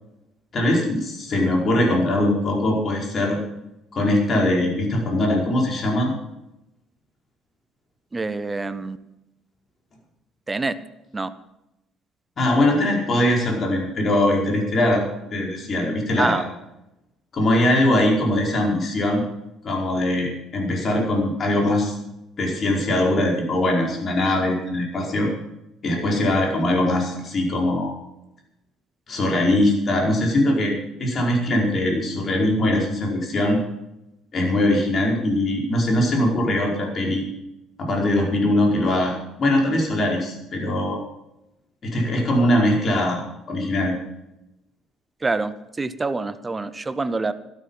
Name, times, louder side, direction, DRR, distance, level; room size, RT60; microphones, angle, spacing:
voice 1, 0.5-3.4 3.9-6.1 12.4-15.0 15.3-16.4 17.3-19.2 19.6-21.9 22.4-25.3 25.8-27.9 29.1-30.7 31.0-33.6 34.3-37.2 37.8-41.0 41.8-43.2 43.5-43.9, left 1 dB, 40° left, 0 dB, 4.9 m, -21 dB
voice 2, 8.1-9.0 10.5-10.7 11.1-11.3 16.2-16.4 45.2-47.3, right 3 dB, 20° right, 13 dB, 1.1 m, -26 dB
13.5 x 13.0 x 5.7 m, 0.88 s
hypercardioid pair, 55°, 0 cm